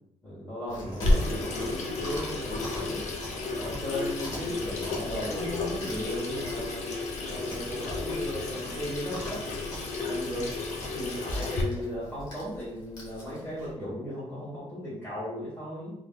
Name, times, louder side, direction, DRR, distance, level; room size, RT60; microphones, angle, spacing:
voice 1, 0.2-3.0 3.4-6.9 7.3-9.4 10.1-10.5 10.9-15.9, left 1 dB, 15° left, -11 dB, 1.3 m, -36 dB
Chewing mastication, 0.7-13.7, equal, 35° left, 1.0 m, -44 dB
Water tap faucet / Sink (filling or washing), 1.0-11.6, left 2 dB, 80° left, 0.6 m, -32 dB
3.6 x 2.8 x 2.3 m, 0.83 s
cardioid pair, 160°, 12 cm